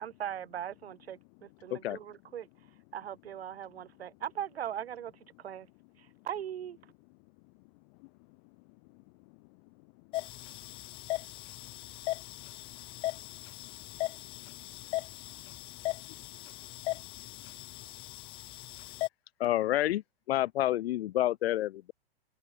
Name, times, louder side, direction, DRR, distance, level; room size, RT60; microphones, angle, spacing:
voice 1, 0.0-2.5 2.9-5.1 5.4-5.7 6.0-6.8, right 10 dB, 85° right, 1.3 m, -39 dB
sound 1, 10.1-19.1, left 17 dB, 20° left, 0.3 m, -39 dB
voice 2, 13.4-14.7 15.1-15.2 17.2-17.3, left 33 dB, 40° left, 0.9 m, -59 dB
voice 3, 19.4-20.0 20.3-21.9, left 14 dB, 80° left, 0.5 m, -29 dB
hypercardioid pair, 130°, 30 cm